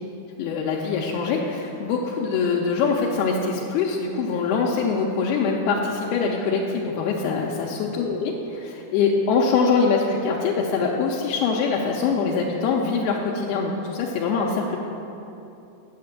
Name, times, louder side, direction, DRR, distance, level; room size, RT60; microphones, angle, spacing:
voice 1, 0.4-14.8, left 5 dB, 80° left, -1 dB, 2.4 m, -23 dB
9.4 x 6.7 x 7.5 m, 2.9 s
omnidirectional pair, 4.9 m